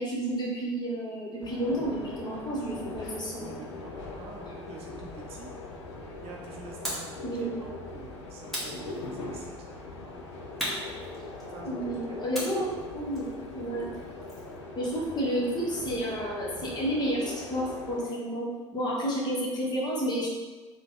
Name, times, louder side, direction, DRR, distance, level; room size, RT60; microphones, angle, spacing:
voice 1, 0.0-3.6 7.2-7.5 11.6-13.9 14.8-20.3, right 1 dB, 30° left, -4 dB, 1.0 m, -31 dB
sound 1, 1.4-18.0, left 2 dB, 70° left, 0.5 m, -41 dB
voice 2, 3.3-5.5 6.2-10.2 11.5-12.3, right 4 dB, 40° right, 0 dB, 0.5 m, -47 dB
sound 2, 6.8-7.2 8.5-9.4 10.6-11.7 12.3-14.6, equal, ahead, 1.1 m, -37 dB
3.2 x 2.2 x 3.6 m, 1.3 s
figure-of-eight pair, 65°, 15 cm